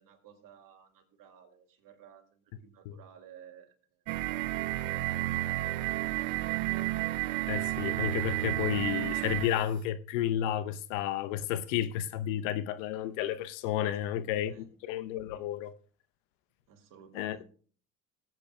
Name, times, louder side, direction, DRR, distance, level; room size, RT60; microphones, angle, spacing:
voice 1, 0.0-4.0 4.9-6.6 13.8-14.0 14.5-14.7 16.7-17.4, right 8 dB, 55° right, 2.2 m, -56 dB
sound 1, 4.1-9.6, right 16 dB, 70° right, 0.5 m, -31 dB
voice 2, 7.5-15.7 17.1-17.4, left 11 dB, 70° left, 0.8 m, -32 dB
19.5 x 8.3 x 2.2 m
hypercardioid pair, 65°, 40 cm